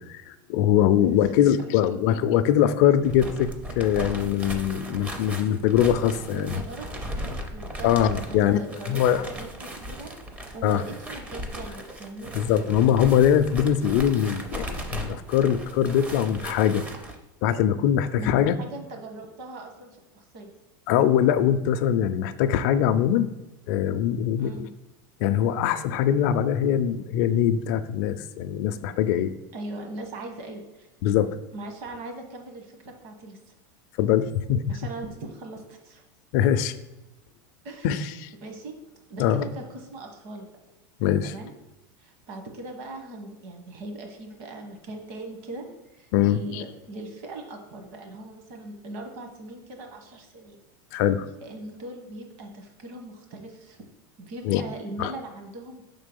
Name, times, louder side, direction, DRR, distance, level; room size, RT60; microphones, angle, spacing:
voice 1, 0.0-6.5 7.8-8.6 8.9-9.2 10.6-10.8 12.3-16.8 17.4-18.6 20.9-23.3 23.7-24.7 25.2-29.3 31.0-31.4 34.0-34.6 36.3-36.7 37.8-38.3 39.2-39.4 41.0-41.3 46.1-46.6 50.9-51.3 54.5-54.6 55.0-55.1, left 10 dB, 55° left, 9 dB, 0.4 m, -22 dB
voice 2, 1.6-2.1 6.3-7.9 8.3-12.3 18.1-20.5 24.4-24.7 29.5-30.9 31.5-33.5 34.7-36.0 37.6-38.0 38.4-38.7 39.1-40.5 41.2-41.5 42.0-45.6 45.9-50.6 51.4-53.8 54.2-55.8, right 2 dB, 55° right, 4 dB, 1.1 m, -40 dB
sound 1, 3.0-17.2, right 1 dB, 15° right, 0.5 m, -37 dB
5.5 x 3.7 x 5.3 m, 1.0 s
supercardioid pair, 160°, 11 cm